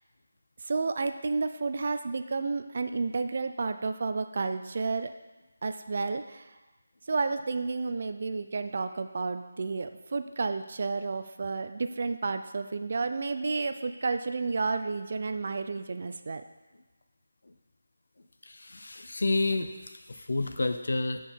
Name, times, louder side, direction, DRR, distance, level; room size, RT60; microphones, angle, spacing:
voice 1, 0.7-5.1 5.6-6.4 7.1-16.4, right 4 dB, 45° right, 9 dB, 0.4 m, -31 dB
voice 2, 18.5-19.7 20.1-21.2, left 2 dB, 70° left, 8 dB, 0.6 m, -29 dB
7.7 x 4.6 x 4.4 m, 1.1 s
figure-of-eight pair, 170°, 0 cm